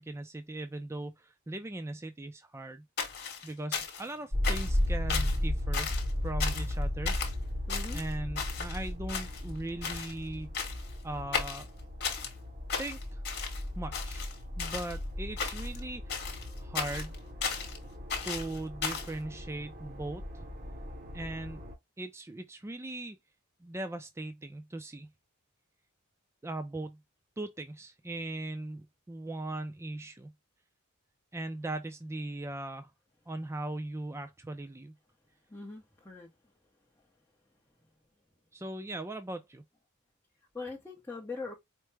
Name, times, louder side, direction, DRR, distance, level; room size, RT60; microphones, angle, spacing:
voice 1, 0.0-2.8 3.4-5.9 6.2-7.2 7.9-10.5 11.0-11.7 12.8-13.2 13.8-14.3 14.6-16.3 16.6-17.1 18.2-20.5 21.1-21.6 22.0-23.2 23.6-25.1 26.4-27.0 27.4-30.3 31.3-32.9 33.3-34.9 38.5-39.6, right 2 dB, 10° right, 0.3 m, -39 dB
sound 1, 3.0-4.1 4.4-4.8 5.1-5.4 5.7-6.1 6.4-6.7 7.1-7.3 7.7-8.8 9.1-9.6 9.8-10.1 10.5-10.9 11.3-12.3 12.7-13.6 13.9-15.0 15.4-15.8 16.1-17.8 18.1-19.1, left 6 dB, 50° left, 1.2 m, -35 dB
sound 2, 4.3-21.7, left 1 dB, 45° right, 1.3 m, -36 dB
voice 2, 7.7-8.0 35.5-36.3 40.5-41.5, left 3 dB, 10° left, 0.7 m, -41 dB
4.5 x 2.0 x 3.2 m
head